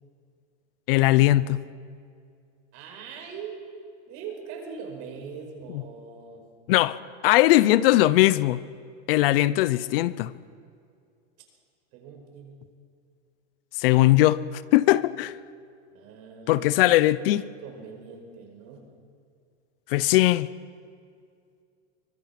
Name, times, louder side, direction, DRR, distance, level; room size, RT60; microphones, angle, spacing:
voice 1, 0.9-1.7 6.7-7.0 7.2-8.6 9.1-10.3 13.8-14.4 14.7-15.3 16.5-17.4 19.9-20.5, left 16 dB, 55° left, 0.7 m, -20 dB
voice 2, 2.7-3.6 4.1-6.5 11.9-12.6 15.9-18.9, right 6 dB, 45° right, 5.1 m, -42 dB
24.5 x 19.5 x 5.9 m
supercardioid pair, 150°, 35 cm